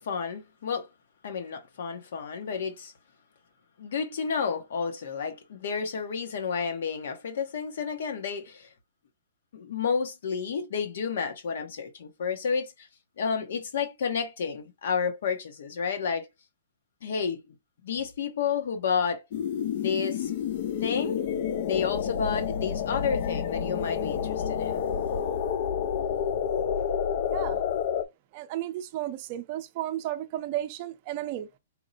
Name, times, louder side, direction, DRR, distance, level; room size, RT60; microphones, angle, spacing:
voice 1, 0.0-0.9 1.2-2.9 3.8-8.7 9.5-12.9 13.2-16.3 17.0-17.4 17.8-19.2 19.7-20.3 20.8-21.2 21.7-24.8, left 6 dB, 70° left, 0.8 m, -31 dB
sound 1, 19.3-28.0, left 8 dB, 45° left, 0.4 m, -29 dB
voice 2, 27.3-27.6 28.3-31.5, right 13 dB, 35° right, 0.5 m, -33 dB
4.3 x 2.0 x 3.9 m
hypercardioid pair, 165°, 0 cm